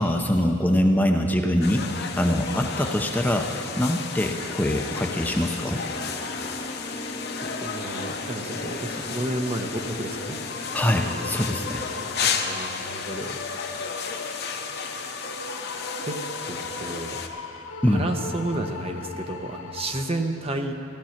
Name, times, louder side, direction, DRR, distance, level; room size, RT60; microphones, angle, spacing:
voice 1, 0.0-5.8 10.7-11.8 17.8-18.0, left 1 dB, 10° left, 2 dB, 0.6 m, -23 dB
sound 1, 1.6-17.3, left 6 dB, 55° left, 0.9 m, -33 dB
sound 2, 4.9-12.1, left 1 dB, 35° left, 2.7 m, -38 dB
voice 2, 7.4-10.4 12.1-13.4 14.8-15.2 16.0-17.2 17.9-20.7, right 1 dB, 30° right, 5 dB, 0.9 m, -32 dB
sound 3, 10.4-20.0, left 3 dB, 80° left, 1.0 m, -38 dB
16.0 x 12.5 x 5.8 m, 2.7 s
head